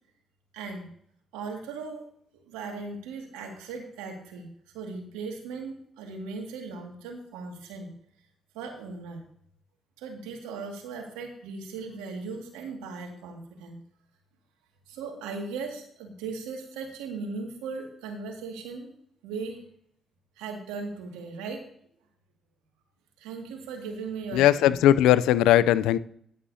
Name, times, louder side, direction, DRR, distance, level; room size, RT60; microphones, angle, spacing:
voice 1, 0.5-0.9 1.3-2.1 2.3-7.9 8.5-9.2 10.0-13.8 14.9-18.9 19.2-19.6 20.4-21.7 23.2-24.7, right 4 dB, 85° right, 2.0 m, -38 dB
voice 2, 24.3-26.0, left 12 dB, 80° left, 0.4 m, -19 dB
11.5 x 11.0 x 2.7 m
hypercardioid pair, 45°, 0 cm